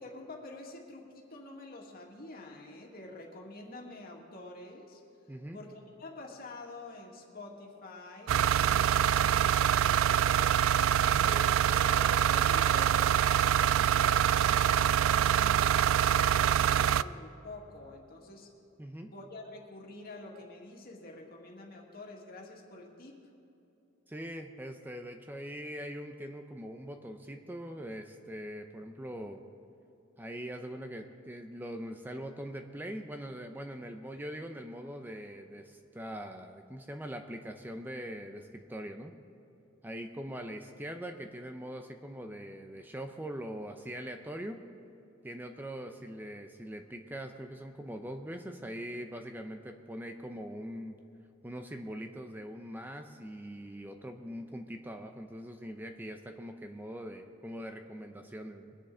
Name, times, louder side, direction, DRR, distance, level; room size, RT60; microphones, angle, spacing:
voice 1, 0.0-5.0 5.5-10.6 11.3-11.5 11.8-18.5 19.0-23.2, left 2 dB, 50° left, 0 dB, 2.1 m, -47 dB
voice 2, 5.3-5.6 11.0-11.3 18.8-19.1 24.1-29.4 30.2-39.2 39.8-44.6 45.2-51.0 51.4-58.8, equal, 10° right, 5 dB, 0.6 m, -42 dB
sound 1, 8.3-17.0, right 9 dB, 85° right, 0.3 m, -25 dB
22.5 x 10.0 x 3.8 m, 2.8 s
head